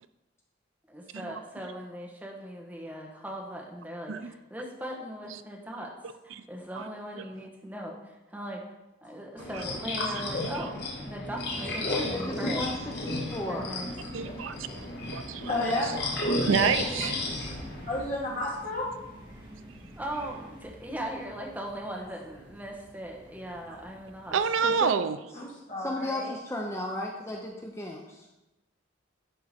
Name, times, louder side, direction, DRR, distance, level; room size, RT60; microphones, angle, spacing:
voice 1, 0.9-5.9 6.2-8.6 9.0-12.8 13.5-13.9 20.0-24.4 24.7-24.9, equal, 10° right, -1 dB, 1.0 m, -39 dB
sound 1, 9.4-17.9, left 2 dB, 55° left, 1.3 m, -33 dB
sound 2, 11.4-24.8, right 1 dB, 25° right, 1.6 m, -50 dB
voice 2, 12.1-13.7 24.6-24.9 25.8-28.3, left 1 dB, 15° left, 0 dB, 0.6 m, -35 dB
voice 3, 14.1-14.7 15.1-15.5 16.3-17.2 24.3-25.2, right 6 dB, 80° right, 11 dB, 0.4 m, -28 dB
voice 4, 15.5-15.9 17.9-18.9 25.3-26.4, left 2 dB, 40° left, -5 dB, 2.3 m, -31 dB
10.5 x 3.7 x 4.2 m, 1.0 s
head